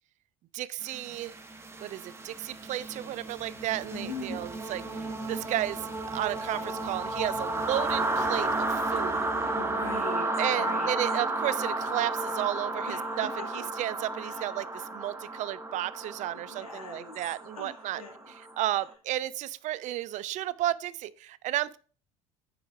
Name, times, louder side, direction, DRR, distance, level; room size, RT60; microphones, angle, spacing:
voice 1, 0.5-1.3 1.8-5.8 6.1-9.2 10.4-18.0 18.6-21.8, right 14 dB, 45° right, 0.5 m, -33 dB
sound 1, 0.9-18.7, right 2 dB, 15° right, 1.3 m, -33 dB
voice 2, 3.9-4.5 9.1-11.0 12.9-13.5 14.2-14.5 16.3-17.1 17.5-18.2, left 4 dB, 80° left, 1.9 m, -42 dB
9.8 x 4.9 x 3.6 m
figure-of-eight pair, 65°, 18 cm